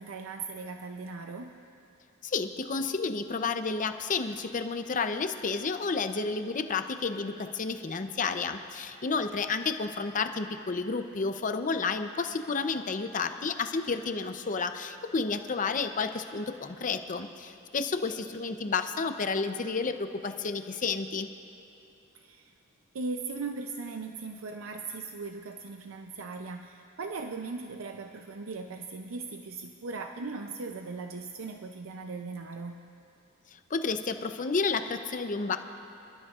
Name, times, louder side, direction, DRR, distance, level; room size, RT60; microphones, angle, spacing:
voice 1, 0.0-1.6 22.1-22.5 22.9-32.8, right 4 dB, 70° right, 5 dB, 0.5 m, -38 dB
voice 2, 2.2-21.3 33.7-35.6, left 4 dB, 40° left, 8 dB, 0.6 m, -31 dB
27.0 x 12.5 x 2.4 m, 2.7 s
head